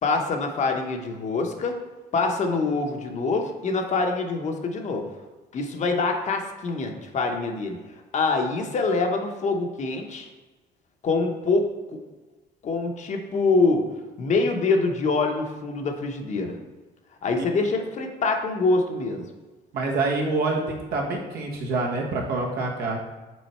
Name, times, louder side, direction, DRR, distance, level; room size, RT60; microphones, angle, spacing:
voice 1, 0.0-1.8 2.1-5.1 5.5-10.3 11.0-12.0 12.6-13.9 14.2-16.6 17.2-19.3, left 3 dB, 45° left, 3 dB, 0.9 m, -25 dB
voice 2, 19.7-23.0, right 3 dB, 70° right, -1 dB, 1.4 m, -26 dB
6.3 x 3.9 x 4.3 m, 1.2 s
cardioid pair, 110°, 17 cm